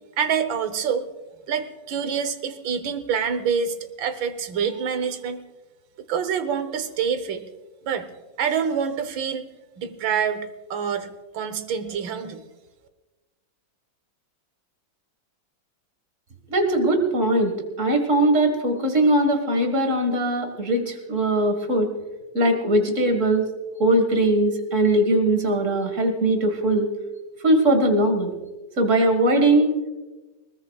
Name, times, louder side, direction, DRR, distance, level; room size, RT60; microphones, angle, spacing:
voice 1, 0.2-1.1 1.5-5.4 6.1-7.4 7.9-8.1 8.4-9.4 9.8-11.1 11.3-12.4, right 7 dB, 70° right, 11 dB, 1.7 m, -26 dB
voice 2, 16.5-21.9 22.3-23.5 23.8-26.9 27.4-28.3 28.8-29.7, right 1 dB, 40° right, 6 dB, 2.0 m, -20 dB
21.0 x 19.5 x 2.4 m, 1.1 s
omnidirectional pair, 2.2 m